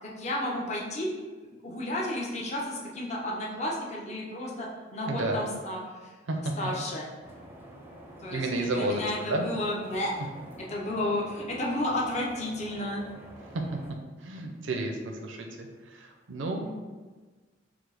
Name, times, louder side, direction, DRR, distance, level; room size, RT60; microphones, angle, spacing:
voice 1, 0.0-1.1 1.6-6.1 6.6-7.1 8.2-10.1 10.4-13.0 14.4-14.5, left 1 dB, 35° left, -3 dB, 0.7 m, -32 dB
voice 2, 5.1-5.4 6.3-6.4 8.3-9.4 13.5-13.6 14.2-16.7, right 2 dB, 75° right, 3 dB, 0.5 m, -31 dB
sound 1, 7.2-13.9, right 1 dB, 10° right, 0.5 m, -48 dB
4.9 x 2.0 x 4.7 m, 1.3 s
head